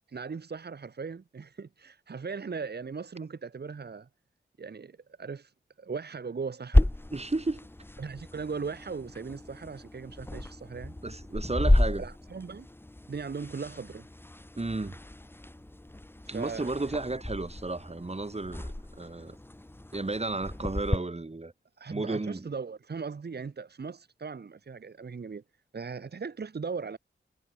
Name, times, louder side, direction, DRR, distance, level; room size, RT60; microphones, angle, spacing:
voice 1, 0.1-4.1 4.6-5.5 5.8-6.9 8.0-11.0 12.0-12.7 13.1-14.1 16.2-16.7 21.8-25.4 25.7-27.0, right 5 dB, 55° right, 1.5 m, -38 dB
sound 1, 6.7-21.0, left 1 dB, 10° left, 1.0 m, -31 dB
voice 2, 7.1-7.7 11.0-12.0 14.6-15.0 16.3-18.7 19.0-19.4 19.9-21.5 21.9-22.5, right 2 dB, 35° right, 3.3 m, -33 dB
cardioid pair, 55°, 20 cm